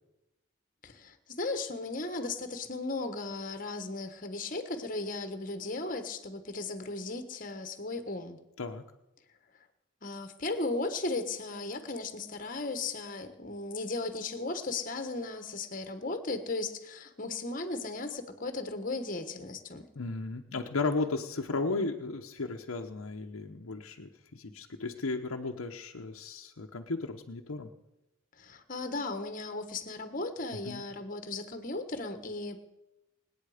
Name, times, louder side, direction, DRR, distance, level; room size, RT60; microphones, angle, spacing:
voice 1, 0.8-8.4 10.0-19.8 28.4-32.6, left 3 dB, 40° left, 8 dB, 1.4 m, -36 dB
voice 2, 19.9-27.7 30.6-30.8, left 3 dB, 85° left, 2 dB, 0.9 m, -35 dB
25.5 x 8.9 x 5.0 m, 0.95 s
head